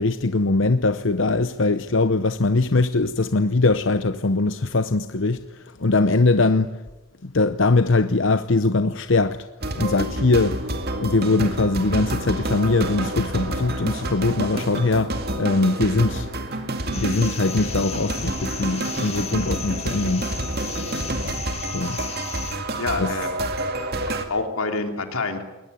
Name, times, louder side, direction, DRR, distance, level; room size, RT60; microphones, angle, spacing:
voice 1, 0.0-6.7 7.2-9.5 9.8-10.6 11.0-16.3 16.9-20.3 21.7-22.0 23.0-23.1, left 3 dB, 60° left, 0.8 m, -21 dB
sound 1, 9.6-24.2, right 1 dB, 45° right, 2.4 m, -28 dB
sound 2, 16.9-22.6, left 7 dB, 30° left, 2.2 m, -35 dB
voice 2, 22.8-23.3 23.7-25.4, left 3 dB, 90° left, 3.4 m, -28 dB
21.5 x 19.5 x 9.7 m
head